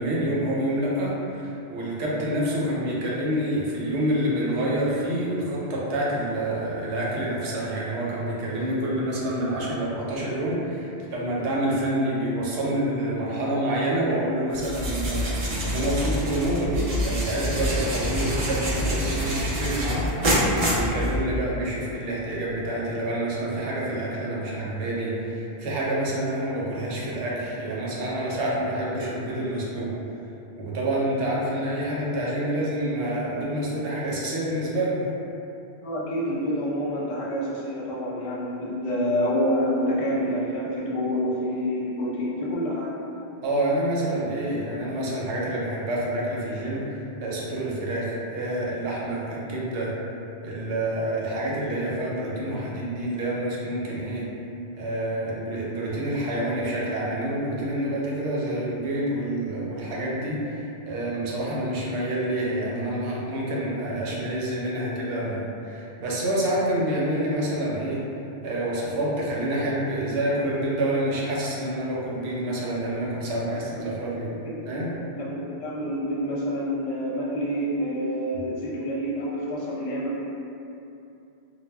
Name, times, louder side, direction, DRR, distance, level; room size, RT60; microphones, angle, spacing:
voice 1, 0.0-20.1 20.6-30.0 30.6-35.1 43.4-50.0 50.4-54.3 54.8-68.0 68.4-74.3 74.7-75.0, right 1 dB, 80° right, -5 dB, 0.9 m, -27 dB
sound 1, 14.5-21.5, equal, 60° right, 0.3 m, -26 dB
voice 2, 35.8-42.9 73.4-74.0 74.4-74.7 75.0-80.2, equal, 55° left, -5 dB, 0.3 m, -28 dB
2.2 x 2.0 x 3.3 m, 2.7 s
omnidirectional pair, 1.1 m